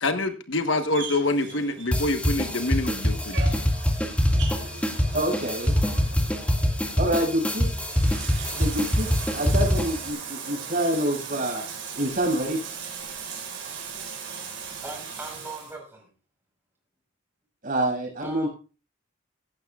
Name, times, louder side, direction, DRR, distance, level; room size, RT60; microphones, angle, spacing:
voice 1, 0.0-3.4, left 2 dB, 65° left, 8 dB, 1.3 m, -26 dB
Bathtub (filling or washing), 0.9-15.7, right 6 dB, 60° right, 5.2 m, -39 dB
sound 1, 1.9-10.1, equal, 5° left, 2.0 m, -24 dB
voice 2, 5.1-5.7 6.9-7.7 8.5-11.7 11.9-12.6 17.6-18.5, right 1 dB, 45° right, 0 dB, 6.7 m, -27 dB
voice 3, 14.4-16.1 18.2-18.5, right 2 dB, 10° right, 2 dB, 4.8 m, -40 dB
16.5 x 12.5 x 2.4 m, 0.33 s
head